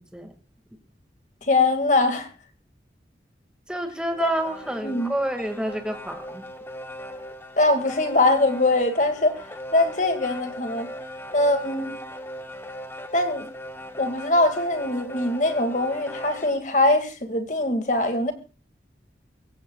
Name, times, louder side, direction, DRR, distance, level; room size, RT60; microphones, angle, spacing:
voice 1, 1.4-2.3 4.2-4.3 4.8-5.1 7.6-9.4 9.7-10.9 11.3-11.9 13.1-13.5 14.0-18.3, left 2 dB, 45° left, 2.2 m, -22 dB
voice 2, 3.7-6.4, right 1 dB, 5° right, 2.0 m, -29 dB
sound 1, 4.0-16.6, equal, 15° left, 0.9 m, -39 dB
24.5 x 15.0 x 2.4 m
head